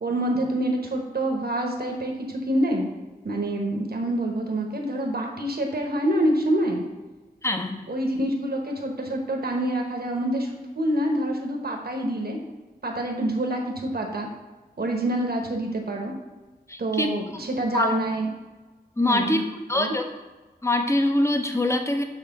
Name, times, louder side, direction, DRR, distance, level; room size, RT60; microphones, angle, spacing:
voice 1, 0.0-2.9 3.2-6.8 7.9-12.4 12.8-14.3 14.8-16.1 16.8-18.3 19.1-19.4 19.7-19.9, right 1 dB, 65° right, 1 dB, 1.2 m, -26 dB
voice 2, 7.4-7.8 16.7-17.1 17.7-17.9 19.0-19.4 19.7-20.1 20.6-22.0, left 1 dB, 15° left, 5 dB, 0.8 m, -23 dB
7.3 x 3.2 x 5.9 m, 1.2 s
wide cardioid pair, 70°, 17 cm